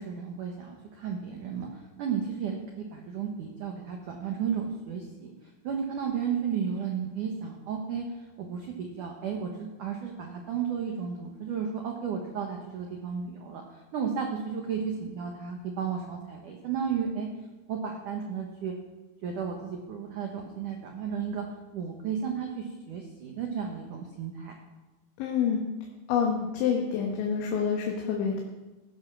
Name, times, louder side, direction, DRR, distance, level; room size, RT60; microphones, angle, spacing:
voice 1, 0.0-5.3 5.6-17.3 17.7-18.7 19.2-21.5 21.7-24.5, right 7 dB, 80° right, 2 dB, 1.8 m, -33 dB
voice 2, 25.2-25.6 26.1-28.4, left 7 dB, 70° left, 0 dB, 3.6 m, -27 dB
16.5 x 11.5 x 6.1 m, 1.1 s
omnidirectional pair, 5.8 m